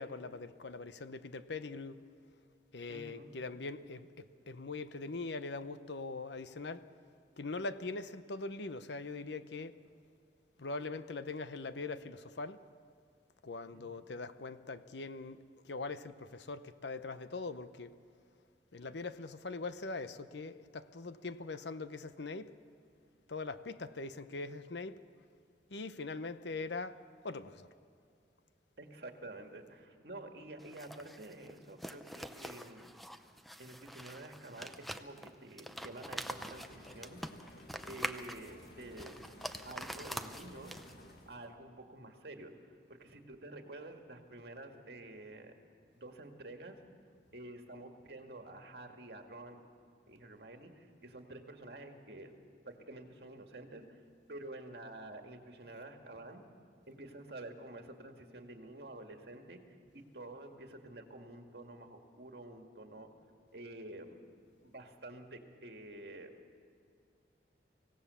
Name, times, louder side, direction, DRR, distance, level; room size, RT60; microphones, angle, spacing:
voice 1, 0.0-2.0 2.7-6.9 7.4-9.8 10.6-12.6 13.4-15.4 15.6-17.9 18.7-22.6 23.3-25.0 25.7-27.7, left 3 dB, 80° left, 0.8 m, -42 dB
voice 2, 2.9-3.3 13.7-14.1 28.8-32.9 33.6-37.2 37.9-39.2 39.6-40.8 41.3-42.5 42.9-45.5 45.9-46.8 47.3-49.6 50.1-52.3 52.7-54.0 54.3-56.4 56.9-59.6 59.9-63.1 63.5-64.2 64.6-66.3, right 2 dB, 65° right, 2.0 m, -49 dB
sound 1, 30.6-41.1, equal, ahead, 0.6 m, -45 dB
sound 2, 36.1-41.5, left 1 dB, 60° left, 2.0 m, -55 dB
25.0 x 17.0 x 7.0 m
head